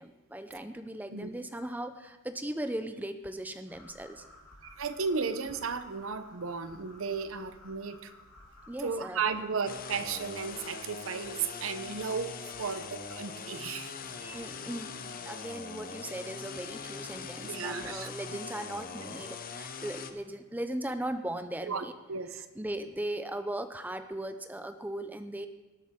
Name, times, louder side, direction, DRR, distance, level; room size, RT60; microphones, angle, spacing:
voice 1, 0.0-4.2 8.7-9.2 14.2-21.9 22.6-25.5, right 1 dB, 10° right, 8 dB, 0.5 m, -38 dB
sound 1, 3.7-10.8, left 2 dB, 85° left, 3.7 m, -55 dB
voice 2, 4.6-8.1 8.8-13.9 17.4-18.1 21.6-22.5, right 5 dB, 75° right, 11 dB, 0.7 m, -34 dB
sound 2, 9.7-20.1, left 5 dB, 40° left, 0.7 m, -42 dB
19.0 x 8.5 x 3.7 m, 1.2 s
head